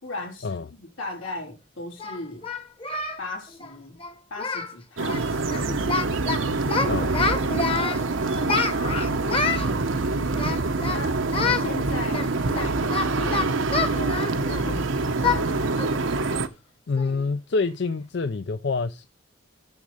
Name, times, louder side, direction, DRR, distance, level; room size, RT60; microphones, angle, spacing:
voice 1, 0.0-2.5 3.2-4.0 4.3-5.9 6.4-10.6 10.9-11.2 11.5-12.2 12.5-15.9, left 2 dB, 85° left, 3.4 m, -38 dB
Singing, 1.2-1.3 2.0-3.2 3.5-3.7 4.0-4.1 4.4-4.7 5.0-5.2 5.5-6.4 6.7-8.0 8.5-9.7 10.3-11.0 11.3-11.6 12.1-14.8 15.2-15.4 15.8-16.0 16.4-16.5 17.0-17.2, left 4 dB, 25° left, 1.1 m, -27 dB
sound 1, 5.0-16.5, right 3 dB, 75° right, 0.9 m, -25 dB
voice 2, 16.9-19.1, left 4 dB, 55° left, 0.5 m, -26 dB
7.1 x 6.4 x 6.3 m
head